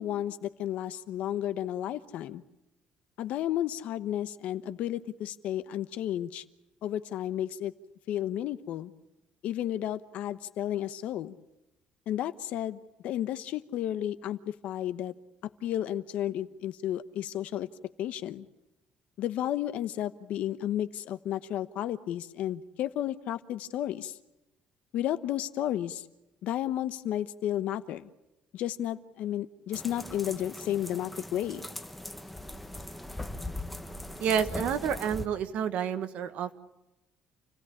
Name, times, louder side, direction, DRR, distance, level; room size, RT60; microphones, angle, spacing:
voice 1, 0.0-2.4 3.2-6.4 6.8-7.7 8.1-8.9 9.4-11.3 12.1-15.1 15.6-17.7 18.0-18.5 19.2-24.1 24.9-26.0 26.4-28.1 28.5-31.7, left 12 dB, 65° left, 11 dB, 1.1 m, -32 dB
sound 1, 29.7-35.3, left 1 dB, 5° left, 1.0 m, -40 dB
voice 2, 34.2-36.5, right 8 dB, 60° right, 10 dB, 1.5 m, -29 dB
29.0 x 17.0 x 8.7 m, 0.97 s
cardioid pair, 165°, 3 cm